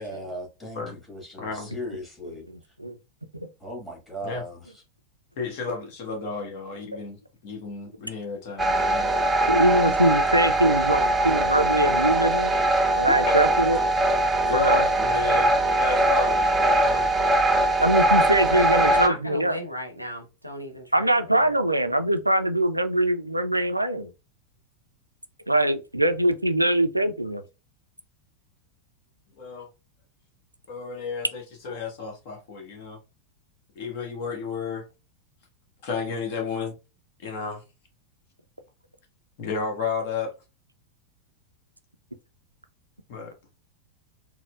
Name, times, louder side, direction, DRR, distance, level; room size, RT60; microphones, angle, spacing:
voice 1, 0.0-2.5 3.6-4.7, equal, 10° left, 1.8 m, -37 dB
voice 2, 1.4-1.7 4.2-4.4 5.4-9.1 9.8-10.0 14.5-17.1 29.3-29.7 30.7-33.0 33.7-34.8 35.8-36.8 37.2-37.6 39.4-40.3 43.1-43.3, left 5 dB, 50° left, 1.1 m, -32 dB
sound 1, 8.6-19.1, right 1 dB, 10° right, 0.5 m, -21 dB
voice 3, 9.5-12.5 12.9-13.8 14.5-14.8 17.8-19.6 20.9-24.1 25.5-27.4, right 1 dB, 85° right, 0.3 m, -22 dB
voice 4, 18.5-21.6, left 1 dB, 90° left, 0.6 m, -35 dB
4.2 x 2.1 x 2.3 m
figure-of-eight pair, 90°, 0 cm